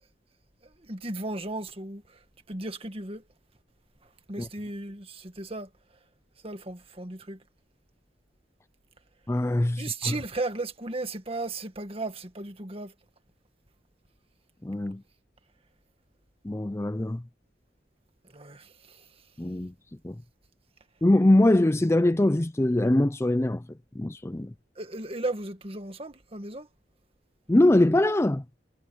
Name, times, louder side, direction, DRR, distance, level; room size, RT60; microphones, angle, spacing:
voice 1, 0.8-2.0 2.5-3.2 4.3-5.7 6.4-7.4 9.8-12.9 18.3-19.0 24.8-26.7, right 2 dB, 35° right, 1.9 m, -35 dB
voice 2, 9.3-10.1 14.6-15.0 16.4-17.2 19.4-19.7 20.0-20.2 21.0-23.6 24.0-24.5 27.5-28.4, left 1 dB, 15° left, 0.5 m, -22 dB
head